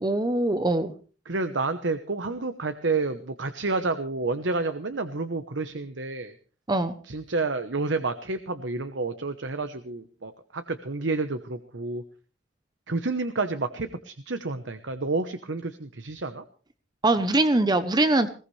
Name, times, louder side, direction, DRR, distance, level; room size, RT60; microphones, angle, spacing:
voice 1, 0.0-0.9 6.7-7.0 17.0-18.3, right 2 dB, 25° right, 10 dB, 0.8 m, -22 dB
voice 2, 1.3-6.3 7.0-12.0 12.9-16.4, right 3 dB, 85° right, 9 dB, 1.1 m, -29 dB
21.0 x 17.5 x 3.3 m, 0.38 s
head